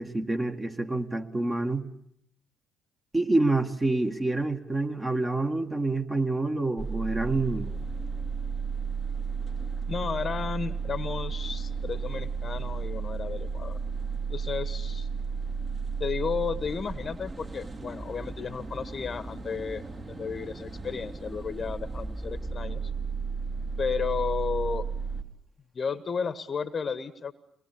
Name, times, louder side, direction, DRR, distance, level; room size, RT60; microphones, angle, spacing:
voice 1, 0.0-1.9 3.1-7.7, right 2 dB, 20° right, 4 dB, 1.9 m, -27 dB
sound 1, 6.8-25.2, right 5 dB, 35° right, 2.9 m, -34 dB
voice 2, 9.9-13.8 14.3-15.1 16.0-22.9 23.8-24.9 25.7-27.3, left 5 dB, 45° left, 13 dB, 1.2 m, -33 dB
24.5 x 20.5 x 8.6 m, 0.73 s
supercardioid pair, 60°, 0 cm